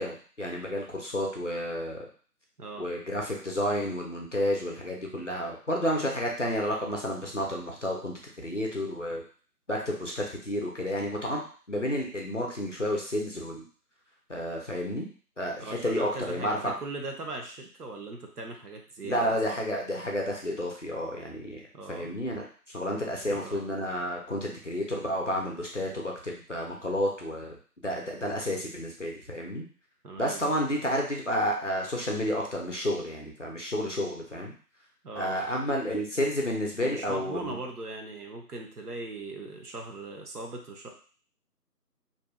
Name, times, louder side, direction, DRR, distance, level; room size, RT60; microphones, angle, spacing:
voice 1, 0.0-2.1 2.8-9.2 9.7-11.4 11.7-13.6 14.3-15.1 15.4-16.7 19.0-21.6 21.9-22.4 22.7-27.6 27.8-29.7 30.2-34.5 35.2-37.6, equal, 50° left, 0 dB, 0.5 m, -31 dB
voice 2, 15.6-19.4 21.7-22.1 23.3-23.7 30.0-30.4 35.0-35.4 36.8-40.9, right 2 dB, 70° right, 2 dB, 0.7 m, -39 dB
2.6 x 2.1 x 2.3 m, 0.41 s
figure-of-eight pair, 170°, 48 cm